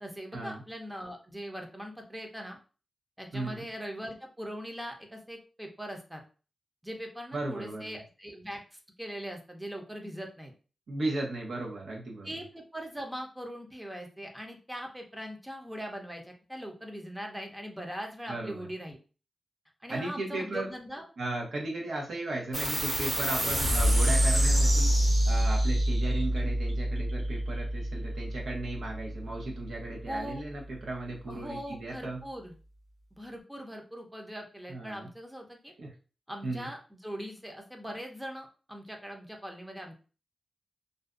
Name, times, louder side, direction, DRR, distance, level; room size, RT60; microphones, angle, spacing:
voice 1, 0.0-2.6 3.2-6.2 6.8-10.5 12.2-19.0 19.8-21.1 30.1-30.4 31.3-32.5 33.1-35.7 36.3-39.9, equal, 10° right, 2 dB, 0.5 m, -41 dB
voice 2, 3.3-3.6 7.3-8.0 10.9-12.3 18.3-18.7 19.9-20.7 21.2-32.2 34.7-35.1 35.8-35.9 36.4-36.7, right 2 dB, 80° right, -1 dB, 0.8 m, -36 dB
sound 1, 22.5-29.4, right 1 dB, 65° right, 1.3 m, -26 dB
2.4 x 2.2 x 2.4 m, 0.36 s
wide cardioid pair, 90°, 0 cm